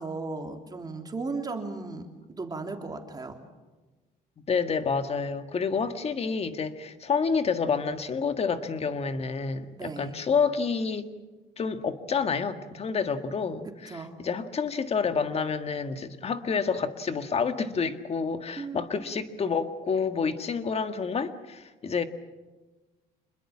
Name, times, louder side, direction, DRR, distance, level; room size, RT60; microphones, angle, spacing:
voice 1, 0.0-3.4 9.7-10.2 13.9-14.2 18.6-18.9, right 3 dB, 25° right, 3.2 m, -36 dB
voice 2, 4.5-11.1 11.6-22.0, left 5 dB, 35° left, 1.8 m, -29 dB
27.0 x 21.5 x 7.3 m
cardioid pair, 110°, 17 cm